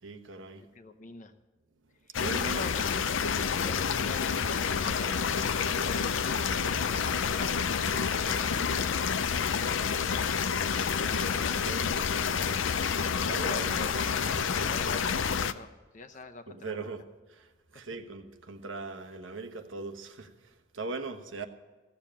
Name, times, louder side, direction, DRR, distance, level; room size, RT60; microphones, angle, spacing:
voice 1, 0.0-0.7 2.2-2.6 11.6-11.9 13.2-13.7 16.5-17.0 17.3-21.5, right 3 dB, 85° right, 1.2 m, -40 dB
voice 2, 0.6-1.3 2.0-6.0 6.3-16.9, left 3 dB, 40° left, 0.9 m, -46 dB
sound 1, 2.1-15.5, left 6 dB, 80° left, 0.5 m, -29 dB
16.0 x 7.2 x 8.7 m
head